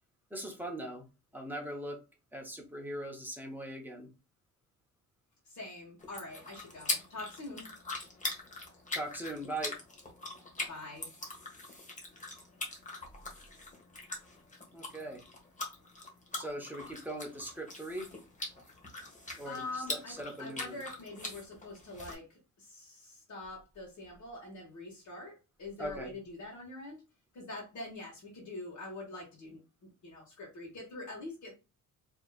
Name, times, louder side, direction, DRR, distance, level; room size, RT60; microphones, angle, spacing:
voice 1, 0.3-1.1 1.3-2.0 2.3-4.1 8.9-9.7 14.7-15.2 16.3-18.1 19.4-20.8 25.8-26.1, right 1 dB, 5° right, 1.0 m, -40 dB
voice 2, 5.4-7.7 10.7-11.1 19.4-27.0 27.3-29.6 30.0-31.5, left 2 dB, 55° left, 1.5 m, -44 dB
sound 1, 6.0-22.1, left 2 dB, 20° left, 1.1 m, -42 dB
4.7 x 3.0 x 2.4 m
wide cardioid pair, 160°, 34 cm